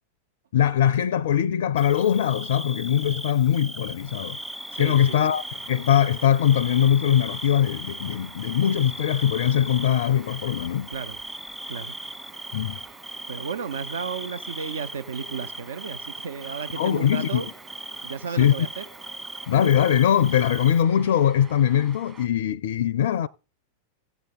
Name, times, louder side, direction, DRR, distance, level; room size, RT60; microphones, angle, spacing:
voice 1, 0.5-4.4 4.8-10.9 12.5-12.8 16.8-17.4 18.4-18.5 19.5-23.3, left 10 dB, 60° left, 0.4 m, -21 dB
Bird / Cricket, 1.8-20.8, right 1 dB, 5° right, 0.7 m, -38 dB
sound 1, 4.0-22.3, right 5 dB, 25° right, 1.3 m, -49 dB
voice 2, 4.7-5.2 10.9-11.2 11.7-12.0 13.3-17.5 18.0-18.8, right 6 dB, 65° right, 0.6 m, -33 dB
14.5 x 8.0 x 3.8 m
figure-of-eight pair, 90°, 0 cm